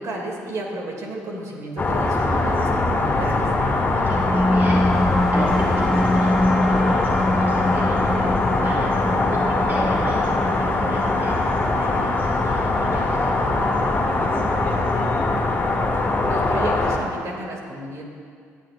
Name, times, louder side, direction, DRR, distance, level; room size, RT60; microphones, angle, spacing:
voice 1, 0.0-3.5 16.3-18.0, right 2 dB, 60° right, -1 dB, 2.6 m, -32 dB
sound 1, 1.8-17.0, left 2 dB, 30° left, 2.2 m, -22 dB
voice 2, 3.6-5.0 5.3-15.1, right 1 dB, 35° right, -5 dB, 2.0 m, -35 dB
sound 2, 4.0-14.9, left 1 dB, ahead, 0.6 m, -25 dB
19.0 x 11.0 x 2.6 m, 2.2 s
supercardioid pair, 65°, 6 cm